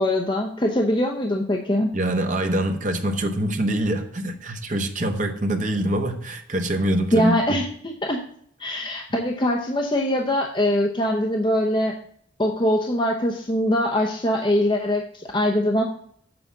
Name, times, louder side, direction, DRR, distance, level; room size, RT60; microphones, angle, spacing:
voice 1, 0.0-1.9 7.1-8.2 8.6-11.9 12.4-15.8, left 1 dB, 25° left, 0.7 m, -22 dB
voice 2, 1.9-7.4, right 1 dB, 40° right, 1.1 m, -24 dB
7.8 x 5.0 x 7.2 m
head